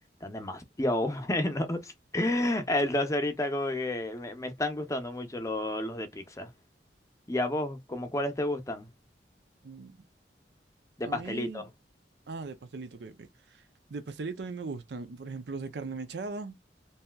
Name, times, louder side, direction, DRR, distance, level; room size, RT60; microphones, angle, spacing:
voice 1, 0.2-6.5 7.3-8.9 11.0-11.7, left 1 dB, 20° left, 0.6 m, -30 dB
voice 2, 9.6-10.0 11.0-11.6 12.3-16.6, right 3 dB, 70° right, 0.5 m, -39 dB
3.3 x 2.7 x 2.2 m
head